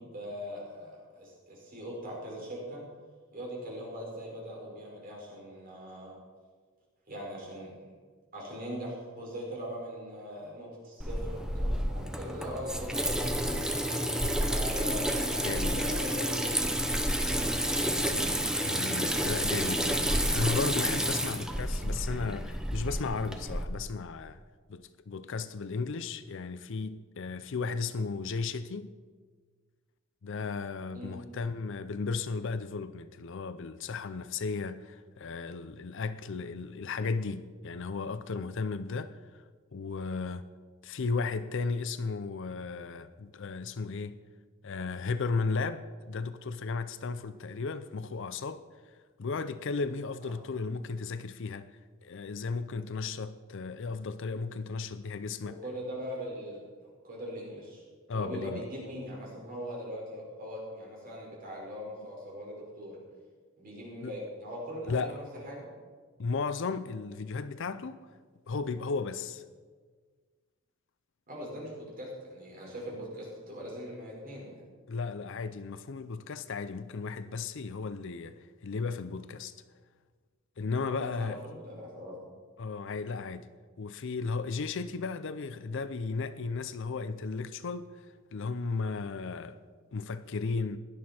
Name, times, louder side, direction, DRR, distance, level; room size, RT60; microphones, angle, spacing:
voice 1, 0.0-2.8 3.3-6.2 7.1-7.9 8.3-13.5 14.4-18.0 30.9-31.2 50.2-50.3 55.4-57.8 58.1-63.0 63.6-65.7 71.3-74.6 80.8-82.3, equal, 45° right, 4.9 m, -41 dB
Water tap faucet / Sink (filling or washing), 11.0-23.6, equal, 5° right, 0.9 m, -30 dB
voice 2, 15.4-15.7 18.6-24.4 24.7-28.9 30.2-39.1 39.7-40.5 40.8-44.2 44.6-48.6 49.2-51.7 52.0-55.6 58.1-58.6 64.0-64.2 64.8-65.2 66.2-68.0 68.5-69.4 74.9-79.5 80.6-81.4 82.6-83.5 83.8-87.9 88.3-89.6 89.9-90.8, left 4 dB, 65° left, 0.5 m, -35 dB
17.0 x 11.5 x 4.4 m
head